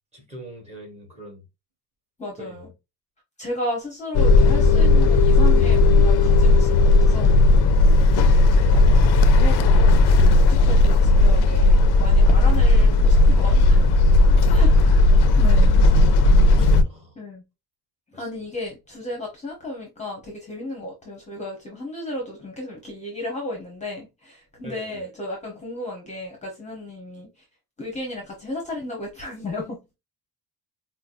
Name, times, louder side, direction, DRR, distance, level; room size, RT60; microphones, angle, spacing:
voice 1, 0.1-1.4 2.4-2.7 8.1-8.9 14.7-15.3 16.5-17.1 18.1-18.3 24.6-24.9, right 1 dB, 15° right, 1.4 m, -42 dB
voice 2, 2.2-2.7 3.4-7.4 8.5-13.9 14.5-14.7 15.4-15.9 17.2-17.4 18.1-27.3 27.8-29.8, left 1 dB, 15° left, 0.9 m, -34 dB
sound 1, 4.1-16.8, left 2 dB, 75° left, 0.6 m, -15 dB
5.0 x 2.1 x 2.4 m
cardioid pair, 180°, 40 cm